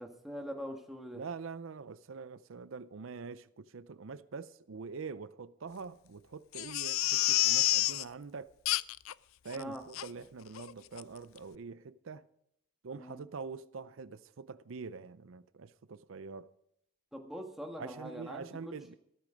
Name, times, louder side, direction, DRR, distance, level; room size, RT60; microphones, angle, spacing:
voice 1, 0.0-1.2 9.6-9.8 12.9-13.2 17.1-18.7, equal, ahead, 1.7 m, -43 dB
voice 2, 1.1-8.5 9.4-12.3 12.8-16.5 17.8-18.9, right 5 dB, 80° right, 0.5 m, -45 dB
Crying sobbing, 6.5-8.0 8.6-9.1 9.5-9.6 9.9-10.1 10.5-10.7 11.0-11.1, left 16 dB, 90° left, 0.4 m, -29 dB
14.0 x 13.5 x 5.1 m
head